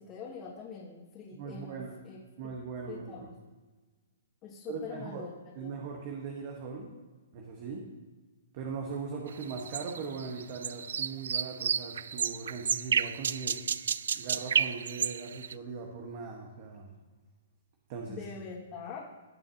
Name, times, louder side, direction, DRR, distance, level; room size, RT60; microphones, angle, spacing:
voice 1, 0.1-2.2 2.9-3.3 4.4-5.3 5.6-5.7 18.1-19.0, left 6 dB, 30° left, -7 dB, 2.2 m, -43 dB
voice 2, 1.3-1.9 2.4-3.3 4.7-5.2 5.5-6.9 7.3-7.9 8.5-13.6 14.1-16.9 17.9-18.2, right 5 dB, 45° right, 0 dB, 1.4 m, -40 dB
sound 1, 9.4-15.5, right 7 dB, 75° right, 0.3 m, -31 dB
18.0 x 6.6 x 2.9 m, 1.3 s
hypercardioid pair, 135°, 0 cm